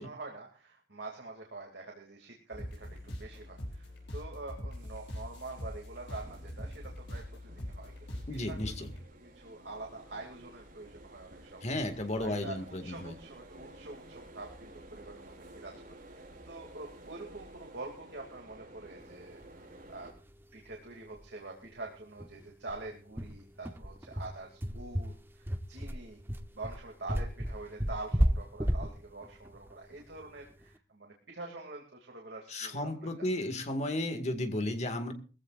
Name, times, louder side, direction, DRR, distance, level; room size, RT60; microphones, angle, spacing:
voice 1, 0.0-7.9 8.3-11.7 12.2-20.1 20.5-26.2 26.5-33.6, right 2 dB, 70° right, 0 dB, 2.6 m, -46 dB
sound 1, 2.5-9.1, left 1 dB, 80° left, 6.1 m, -42 dB
sound 2, 2.5-20.1, right 1 dB, 50° right, 4.9 m, -53 dB
voice 2, 8.3-8.9 11.6-13.1 32.5-35.1, left 1 dB, 40° left, 7 dB, 2.1 m, -34 dB
sound 3, 20.3-20.4 20.7-20.8 21.1-21.3 21.6-21.7 22.2-30.6, equal, 15° right, 0.9 m, -33 dB
21.5 x 15.5 x 2.5 m, 0.35 s
head